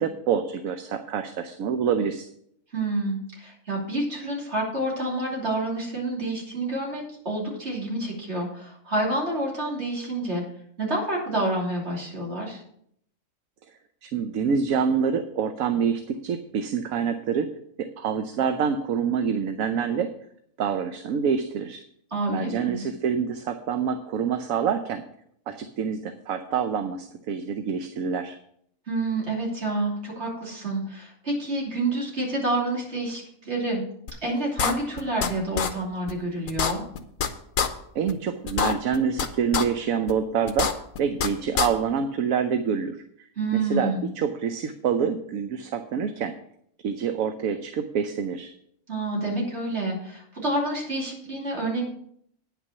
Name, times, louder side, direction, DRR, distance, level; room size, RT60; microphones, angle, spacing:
voice 1, 0.0-2.3 14.0-17.5 17.8-20.1 20.6-21.8 22.3-25.0 25.5-28.4 37.9-43.0 43.5-46.3 46.8-48.5, right 7 dB, 75° right, 8 dB, 1.1 m, -26 dB
voice 2, 2.7-10.4 10.8-12.6 22.1-22.8 28.9-33.8 34.2-36.8 43.4-44.1 48.9-51.8, right 2 dB, 50° right, -3 dB, 3.2 m, -28 dB
sound 1, 34.1-34.2 34.6-35.3 35.6-35.7 36.1-36.2 36.5-37.3 37.6-37.7 38.1-38.2 38.5-39.3 39.5-39.6 40.1-40.2 40.5-41.3 41.6-41.7, left 7 dB, 70° left, 1.3 m, -24 dB
9.6 x 6.0 x 6.8 m, 0.69 s
omnidirectional pair, 1.5 m